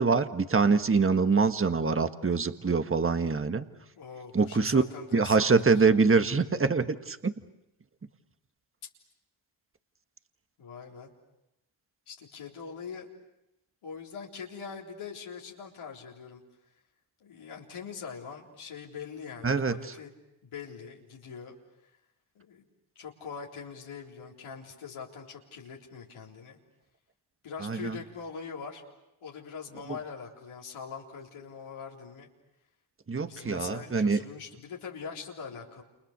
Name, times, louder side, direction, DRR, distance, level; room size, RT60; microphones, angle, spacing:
voice 1, 0.0-3.7 4.3-4.8 5.1-7.3 19.4-19.8 27.6-28.0 33.1-34.2, right 4 dB, 25° right, 9 dB, 1.6 m, -24 dB
voice 2, 3.9-5.8 10.6-11.1 12.1-13.1 13.8-16.4 17.2-20.1 20.4-21.5 22.4-22.6 23.0-26.6 27.4-28.8 29.2-32.3 33.2-35.8, left 6 dB, 75° left, -2 dB, 4.0 m, -42 dB
29.0 x 29.0 x 6.8 m, 0.89 s
supercardioid pair, 55°, 49 cm